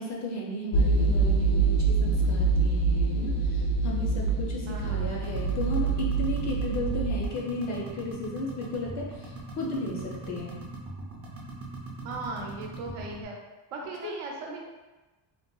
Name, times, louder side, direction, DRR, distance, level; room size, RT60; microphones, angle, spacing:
voice 1, 0.0-10.6 14.0-14.2, left 1 dB, 40° left, -2 dB, 0.4 m, -34 dB
sound 1, 0.7-7.3, right 4 dB, 80° left, 0.6 m, -25 dB
voice 2, 4.6-5.2 12.0-13.4 13.7-14.6, right 3 dB, 90° right, 0 dB, 0.8 m, -38 dB
sound 2, 4.7-13.2, right 2 dB, 30° right, 0.4 m, -41 dB
3.9 x 2.0 x 2.2 m, 1.1 s
cardioid pair, 165°, 48 cm